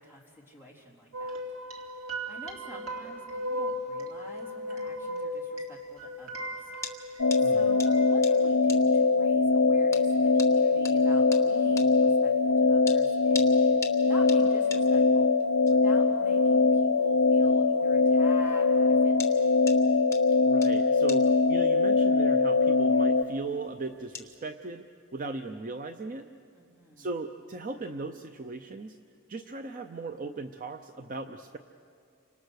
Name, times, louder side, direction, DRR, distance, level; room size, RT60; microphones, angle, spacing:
voice 1, 0.0-1.4 1.7-6.9 7.5-15.3 15.7-19.5 26.5-27.1, left 1 dB, 10° right, -2 dB, 3.6 m, -48 dB
sound 1, 1.1-8.1, equal, 65° right, 3.0 m, -37 dB
sound 2, 5.6-24.4, left 5 dB, 15° left, 1.5 m, -46 dB
sound 3, 7.2-23.2, left 3 dB, 80° left, 0.7 m, -22 dB
voice 2, 7.4-7.8 20.5-26.3 27.0-29.0 29.3-31.6, right 3 dB, 35° right, 7 dB, 0.6 m, -38 dB
30.0 x 26.0 x 6.5 m, 2.4 s
head